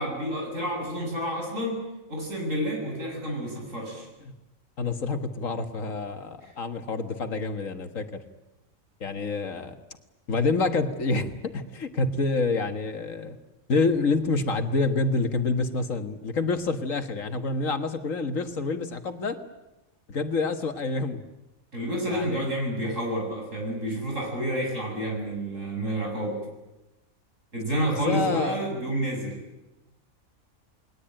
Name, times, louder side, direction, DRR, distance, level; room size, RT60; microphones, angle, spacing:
voice 1, 0.0-1.8 2.1-4.1 6.4-6.5 21.7-26.4 27.5-29.4, right 1 dB, 65° right, 1 dB, 7.8 m, -29 dB
voice 2, 4.8-8.2 9.0-9.8 10.3-13.4 13.7-19.4 20.1-21.2 22.1-22.4 28.1-28.6, left 3 dB, 70° left, 7 dB, 2.0 m, -27 dB
29.5 x 20.5 x 9.0 m, 1.0 s
omnidirectional pair, 1.4 m